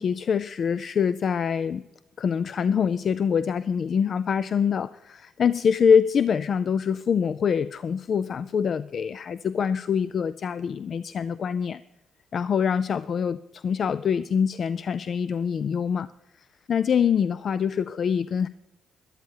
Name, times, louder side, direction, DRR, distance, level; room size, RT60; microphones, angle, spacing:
voice 1, 0.0-1.8 2.2-11.8 12.3-16.1 16.4-18.5, left 7 dB, 55° left, 16 dB, 0.3 m, -25 dB
13.0 x 11.5 x 4.5 m, 0.96 s
cardioid pair, 90°, 0 cm